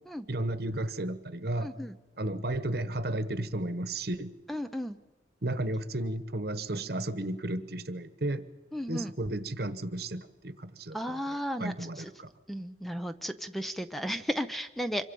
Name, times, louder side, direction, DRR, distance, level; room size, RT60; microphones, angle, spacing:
voice 1, 0.3-1.7 2.2-4.3 5.4-8.4 8.9-11.0 11.6-12.3, right 1 dB, 60° right, 12 dB, 1.2 m, -33 dB
voice 2, 1.6-1.9 4.5-5.0 8.7-9.1 10.9-12.1 12.5-15.1, equal, ahead, 9 dB, 0.6 m, -34 dB
26.5 x 23.5 x 5.4 m, 1.2 s
head